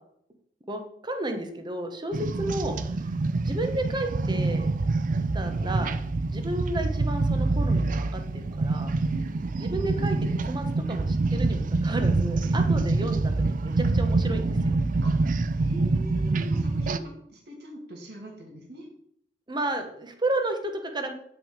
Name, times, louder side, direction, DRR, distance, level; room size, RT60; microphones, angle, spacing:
voice 1, 0.7-2.8 3.4-4.7 5.3-6.0 6.3-8.2 8.6-8.9 9.6-10.2 10.5-14.8 19.5-21.1, right 1 dB, 25° right, 5 dB, 1.2 m, -32 dB
sound 1, 2.1-17.0, right 3 dB, 50° right, 0.5 m, -26 dB
voice 2, 9.0-9.5 12.5-12.7 15.0-18.9, right 1 dB, 65° right, 0 dB, 2.5 m, -43 dB
8.5 x 6.1 x 5.0 m, 0.70 s
head